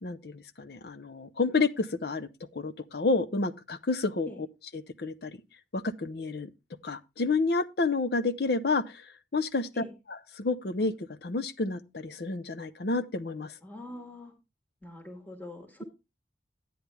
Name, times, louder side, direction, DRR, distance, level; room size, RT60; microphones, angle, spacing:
voice 1, 0.0-4.3 4.7-5.4 5.7-6.5 6.8-9.8 10.4-13.6, left 3 dB, 55° left, 0.6 m, -30 dB
voice 2, 13.6-14.3 14.8-15.8, left 1 dB, 10° left, 1.7 m, -44 dB
10.5 x 9.4 x 3.4 m
head